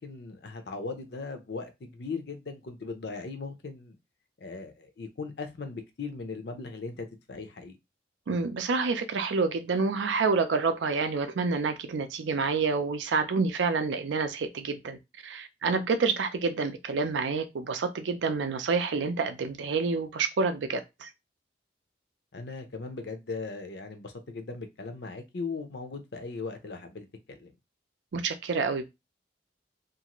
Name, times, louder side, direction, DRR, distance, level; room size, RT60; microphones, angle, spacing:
voice 1, 0.0-4.0 4.4-7.8 22.3-27.5, left 4 dB, 65° left, 0.6 m, -38 dB
voice 2, 8.3-15.0 15.2-21.1 28.1-28.9, right 4 dB, 90° right, 0.5 m, -28 dB
2.6 x 2.4 x 2.9 m
head